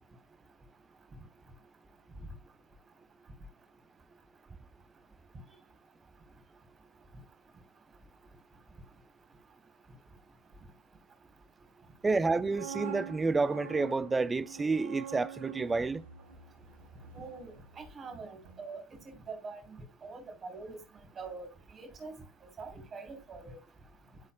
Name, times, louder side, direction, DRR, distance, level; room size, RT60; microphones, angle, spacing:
voice 1, 12.0-16.0, right 3 dB, 20° right, 0.4 m, -29 dB
sound 1, 12.2-18.1 18.4-18.7, right 8 dB, 90° right, 1.0 m, -46 dB
voice 2, 17.1-20.8 21.2-22.2 22.6-23.6, right 4 dB, 35° right, 3.2 m, -44 dB
11.5 x 4.2 x 2.3 m
hypercardioid pair, 85°, 0 cm